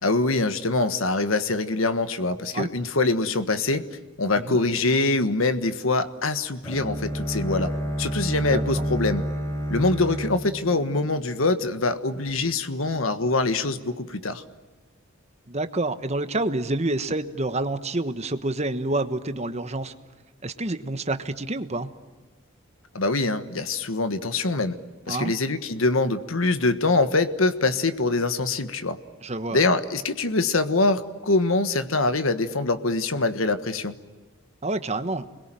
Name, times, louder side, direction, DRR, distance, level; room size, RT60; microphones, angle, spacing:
voice 1, 0.0-3.9 4.2-7.7 8.0-9.3 9.7-14.4 22.9-24.7 25.1-29.0 29.5-34.0, left 3 dB, 75° left, 10 dB, 1.5 m, -24 dB
Bowed string instrument, 6.6-11.6, equal, 15° left, 4.4 m, -29 dB
voice 2, 8.5-8.8 15.5-19.9 20.4-21.9 25.1-25.3 29.2-29.6 34.6-35.3, right 2 dB, 30° right, 10 dB, 1.3 m, -28 dB
29.0 x 22.0 x 9.1 m, 1.3 s
head